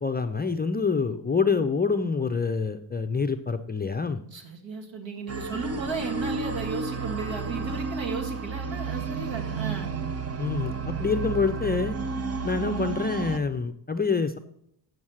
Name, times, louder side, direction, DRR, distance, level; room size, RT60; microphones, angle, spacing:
voice 1, 0.0-4.2 10.4-12.0 12.4-14.4, left 4 dB, 20° left, 7 dB, 0.4 m, -26 dB
voice 2, 4.3-9.9, right 4 dB, 70° right, 2 dB, 2.0 m, -34 dB
sound 1, 5.3-13.4, right 5 dB, 30° right, 0.6 m, -32 dB
8.5 x 6.5 x 6.2 m, 0.72 s
wide cardioid pair, 120°, 48 cm